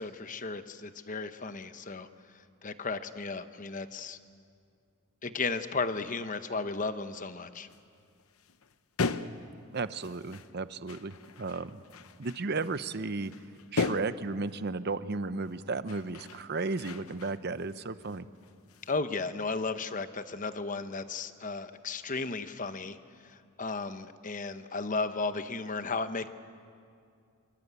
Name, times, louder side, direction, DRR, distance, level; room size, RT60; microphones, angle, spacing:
voice 1, 0.0-2.1 2.6-4.2 5.2-7.7 18.9-23.0 23.2-26.3, left 3 dB, 35° left, 10 dB, 1.0 m, -34 dB
sound 1, 7.7-7.8 8.2-10.5 10.9-14.5 15.4-15.6 15.9-17.8 18.0-19.0, left 4 dB, 75° left, 0.8 m, -38 dB
voice 2, 9.7-11.8 12.2-13.3 13.7-18.3, right 3 dB, 45° right, 13 dB, 0.7 m, -34 dB
26.0 x 23.5 x 8.2 m, 2.4 s
head